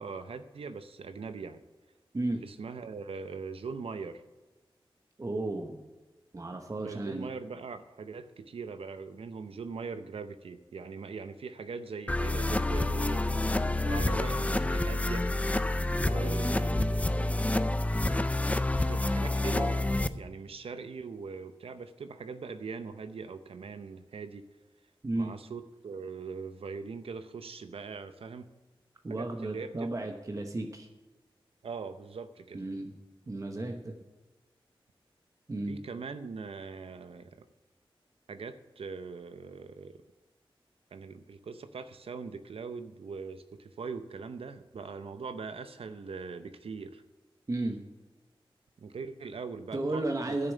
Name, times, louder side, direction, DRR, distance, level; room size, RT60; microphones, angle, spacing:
voice 1, 0.0-1.6 2.4-4.2 6.8-13.3 13.8-15.3 15.9-17.4 18.9-24.4 25.1-28.5 29.1-29.9 31.6-32.6 35.7-37.5 38.3-40.0 40.9-47.0 48.8-50.4, right 5 dB, 85° right, 11 dB, 0.6 m, -41 dB
voice 2, 5.2-5.9 6.3-7.3 25.0-25.3 29.0-30.9 32.5-32.9 33.3-33.9 35.5-35.7 47.5-47.8 49.7-50.5, right 2 dB, 35° right, 4 dB, 1.0 m, -33 dB
sound 1, 12.1-20.1, left 2 dB, 15° left, 0.5 m, -28 dB
10.5 x 6.7 x 8.2 m, 1.2 s
wide cardioid pair, 85°, 9 cm